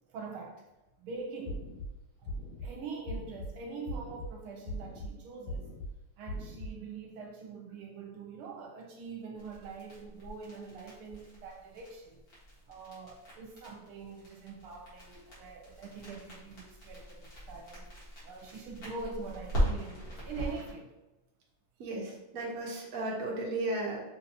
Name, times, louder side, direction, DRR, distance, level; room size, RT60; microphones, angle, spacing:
voice 1, 0.1-0.6 1.0-1.7 2.6-5.7 6.2-12.2 12.7-17.9 18.2-20.9, right 4 dB, 80° right, 0 dB, 1.5 m, -44 dB
sound 1, 1.5-1.9 2.3-2.7 3.1-3.5 3.9-4.3 4.7-5.1 5.5-5.9 6.3-6.7, left 1 dB, 85° left, 1.8 m, -39 dB
sound 2, 9.4-20.7, equal, 45° left, 1.9 m, -39 dB
voice 2, 21.8-24.0, right 2 dB, 50° right, -3 dB, 1.1 m, -35 dB
5.4 x 2.8 x 2.8 m, 1.0 s
omnidirectional pair, 2.4 m